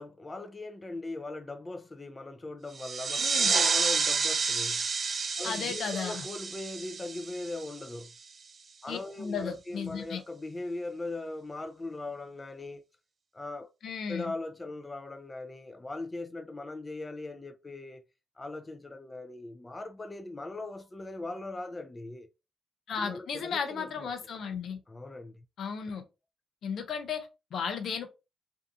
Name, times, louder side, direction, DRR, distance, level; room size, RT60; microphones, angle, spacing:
voice 1, 0.0-4.8 5.4-8.1 8.8-12.8 13.3-13.7 14.1-18.0 18.4-22.3 23.0-24.1 24.9-25.4, left 2 dB, 25° left, 0.4 m, -40 dB
sound 1, 2.7-8.1, right 5 dB, 50° right, 0.4 m, -30 dB
voice 2, 3.2-3.5 5.4-6.2 8.9-10.2 13.8-14.3 22.9-24.8 25.6-26.0 26.6-28.1, left 6 dB, 75° left, 0.5 m, -35 dB
2.6 x 2.3 x 2.6 m
cardioid pair, 75°, 0 cm